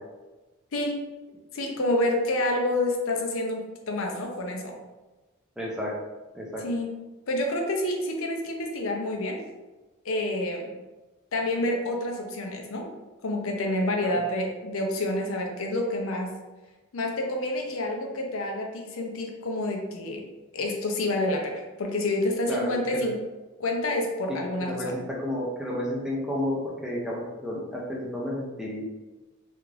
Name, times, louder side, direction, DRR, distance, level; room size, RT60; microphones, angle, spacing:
voice 1, 1.5-4.7 6.6-6.9 7.3-9.4 10.0-10.8 11.3-12.9 13.2-16.3 16.9-20.2 20.5-23.2 23.6-25.0, left 1 dB, 75° left, 2 dB, 0.6 m, -28 dB
voice 2, 5.6-5.9 6.3-6.6 14.0-14.1 22.5-23.1 24.3-28.8, left 1 dB, 5° right, -4 dB, 0.5 m, -32 dB
3.5 x 2.4 x 3.2 m, 1.2 s
head